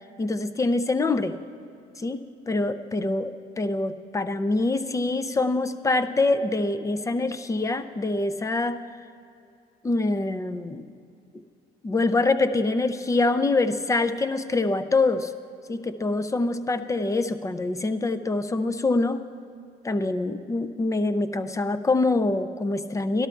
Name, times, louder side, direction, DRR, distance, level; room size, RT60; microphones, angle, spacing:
voice 1, 0.2-1.4 2.0-8.8 9.8-10.9 11.8-15.3 15.7-19.2 19.8-23.3, left 2 dB, 20° left, 11 dB, 0.5 m, -25 dB
12.5 x 12.0 x 4.5 m, 2.5 s
cardioid pair, 110°, 17 cm